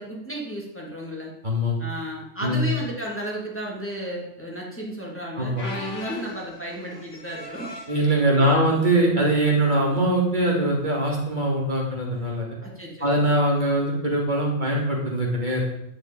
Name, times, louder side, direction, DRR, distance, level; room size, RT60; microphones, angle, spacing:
voice 1, 0.0-1.3 1.8-7.7 8.4-8.8 12.6-13.2, equal, 10° left, -3 dB, 3.1 m, -33 dB
voice 2, 1.4-1.8 2.4-2.6 5.3-5.6 7.9-12.5 13.0-15.6, right 1 dB, 35° right, -2 dB, 3.1 m, -22 dB
sound 1, 5.6-8.0 8.8-9.0 9.4-9.5 10.4-10.6 12.2-12.3, left 2 dB, 30° left, 3.2 m, -39 dB
11.0 x 6.3 x 9.0 m, 0.79 s
omnidirectional pair, 1.4 m